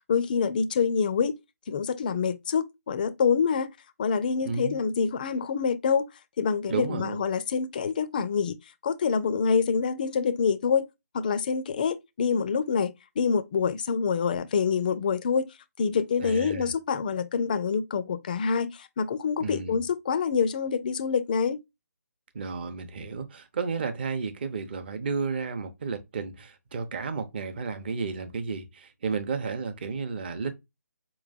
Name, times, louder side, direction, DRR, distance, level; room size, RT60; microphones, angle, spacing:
voice 1, 0.1-1.4 1.7-3.7 4.0-6.1 6.4-8.6 8.8-10.9 11.1-15.5 15.8-21.6, left 6 dB, 30° left, 0.4 m, -26 dB
voice 2, 4.5-4.8 6.7-7.2 16.2-16.7 19.4-19.8 22.3-30.5, right 5 dB, 35° right, 0.7 m, -32 dB
4.6 x 3.1 x 2.5 m
figure-of-eight pair, 145°, 9 cm